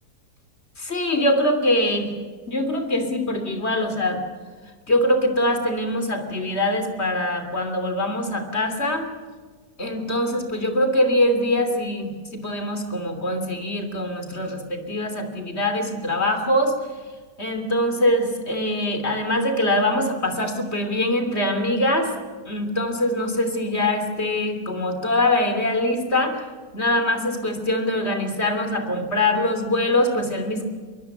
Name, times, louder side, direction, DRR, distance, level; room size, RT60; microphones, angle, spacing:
voice 1, 0.8-2.1 2.5-4.2 4.9-9.1 9.8-16.7 17.4-22.1 22.5-26.4 26.7-30.6, left 1 dB, 40° left, 7 dB, 3.4 m, -23 dB
23.0 x 22.0 x 8.0 m, 1.4 s
omnidirectional pair, 1.7 m